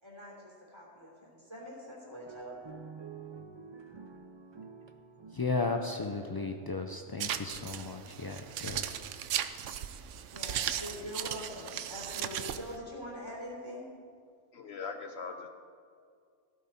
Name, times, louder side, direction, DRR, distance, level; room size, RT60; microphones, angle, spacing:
voice 1, 0.0-2.6 5.6-5.7 10.3-13.9, equal, 20° right, -4 dB, 3.5 m, -44 dB
sound 1, 2.1-7.7, right 5 dB, 45° right, 0.3 m, -50 dB
voice 2, 5.3-9.0, left 3 dB, 40° left, 4 dB, 0.3 m, -35 dB
sound 2, 7.2-12.8, right 10 dB, 75° right, 1.0 m, -37 dB
voice 3, 14.5-15.5, left 5 dB, 60° left, 6 dB, 0.9 m, -40 dB
15.5 x 13.0 x 4.3 m, 2.2 s
omnidirectional pair, 1.3 m